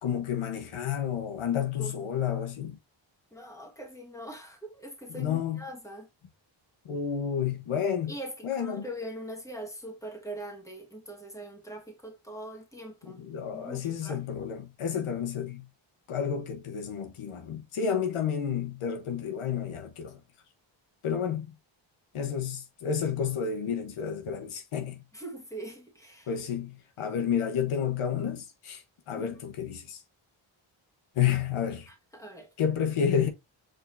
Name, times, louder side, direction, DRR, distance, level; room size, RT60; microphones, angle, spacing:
voice 1, 0.0-2.8 5.1-5.6 6.8-8.1 8.4-8.8 13.0-15.7 16.1-20.2 21.0-21.5 22.1-25.0 26.3-30.0 31.1-31.9 32.6-33.3, left 8 dB, 85° left, 1.0 m, -30 dB
voice 2, 3.3-6.1 8.1-13.2 13.5-14.2 25.1-26.3 29.1-29.4 31.9-32.5, right 1 dB, 5° left, 1.5 m, -42 dB
4.8 x 3.8 x 2.6 m
cardioid pair, 65°, 49 cm